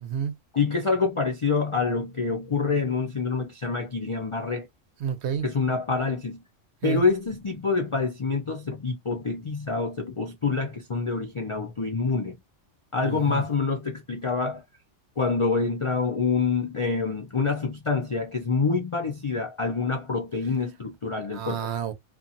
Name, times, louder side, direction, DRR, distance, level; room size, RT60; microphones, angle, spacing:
voice 1, 0.0-0.4 5.0-5.5 6.8-7.0 13.0-13.4 21.3-21.9, right 8 dB, 65° right, 0.9 m, -30 dB
voice 2, 0.5-4.7 5.4-6.4 6.8-12.4 12.9-14.6 15.2-21.6, left 4 dB, 50° left, 0.3 m, -26 dB
2.8 x 2.5 x 2.5 m
omnidirectional pair, 1.3 m